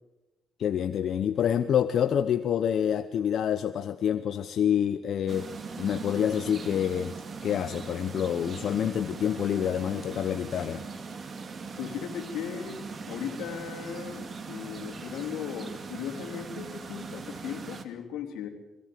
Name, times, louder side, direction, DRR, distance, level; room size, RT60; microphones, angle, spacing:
voice 1, 0.6-5.5 5.8-7.1 7.4-10.8, left 9 dB, 65° left, 10 dB, 0.8 m, -27 dB
sound 1, 5.3-17.8, right 4 dB, 40° right, 2.2 m, -40 dB
voice 2, 11.8-18.5, left 8 dB, 90° left, 3 dB, 3.2 m, -37 dB
23.0 x 17.0 x 7.7 m, 1.1 s
cardioid pair, 90°, 0 cm